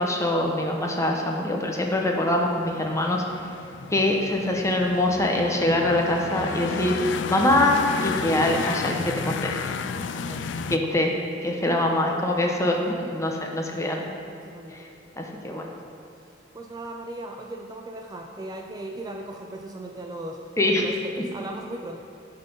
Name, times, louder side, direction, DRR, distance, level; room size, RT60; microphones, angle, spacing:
voice 1, 0.0-3.2 3.9-6.9 7.3-9.7 10.7-11.1 11.4-14.1 14.7-14.9 15.2-15.7 20.6-20.8, left 1 dB, 15° left, 1 dB, 0.8 m, -24 dB
sound 1, 2.4-10.8, left 6 dB, 85° left, 0.4 m, -32 dB
voice 2, 10.2-11.1 14.4-14.9 15.5-15.9 16.5-22.0, right 1 dB, 20° right, 2 dB, 0.4 m, -38 dB
11.5 x 4.1 x 5.3 m, 2.7 s
head